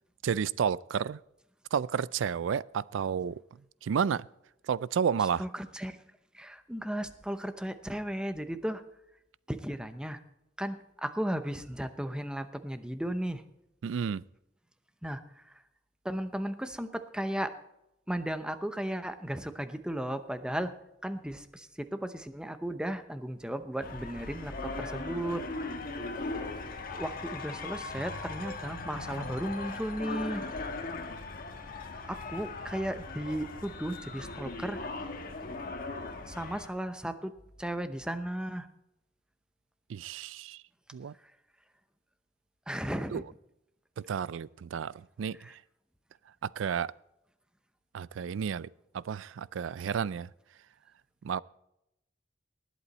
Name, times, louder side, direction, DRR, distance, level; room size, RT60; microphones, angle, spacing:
voice 1, 0.2-1.2 1.7-3.4 3.8-4.3 4.7-5.4 13.8-14.2 39.9-40.6 40.9-41.1 43.1-43.2 44.0-45.4 46.4-46.9 47.9-48.7 48.9-50.3 51.2-51.4, right 7 dB, 85° right, 0.4 m, -31 dB
voice 2, 5.4-6.0 6.3-8.8 9.5-10.2 10.6-13.4 15.0-15.5 16.0-17.5 18.1-20.7 21.0-25.4 26.6-26.7 26.9-30.5 32.1-34.9 36.3-37.3 37.6-38.7 42.7-43.2 45.4-45.6, right 1 dB, 5° right, 0.8 m, -35 dB
sound 1, 23.8-36.7, left 3 dB, 50° left, 1.3 m, -39 dB
19.5 x 8.3 x 4.2 m
head